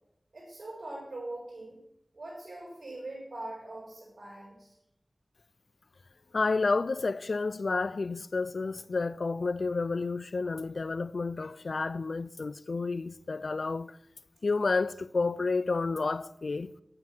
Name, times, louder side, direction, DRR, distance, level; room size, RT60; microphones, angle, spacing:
voice 1, 0.3-1.8 2.1-4.7, right 2 dB, 75° right, 4.9 m, -42 dB
voice 2, 6.3-14.0 14.4-16.7, left 3 dB, 80° left, 0.3 m, -30 dB
9.2 x 8.8 x 6.2 m
wide cardioid pair, 45°, 0 cm